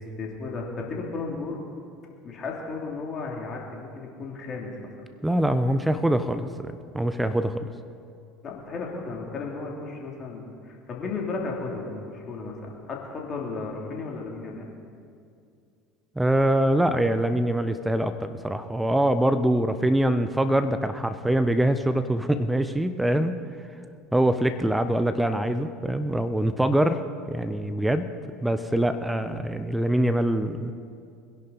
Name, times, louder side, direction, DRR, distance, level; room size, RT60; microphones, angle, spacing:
voice 1, 0.2-1.6 2.2-4.9 8.4-14.7, left 3 dB, 40° left, -1 dB, 3.1 m, -34 dB
voice 2, 5.2-7.7 16.2-23.4 24.1-27.0 27.3-28.1 28.4-30.7, right 1 dB, 5° right, 11 dB, 0.7 m, -24 dB
22.0 x 11.0 x 4.2 m, 2.4 s
figure-of-eight pair, 70°, 0 cm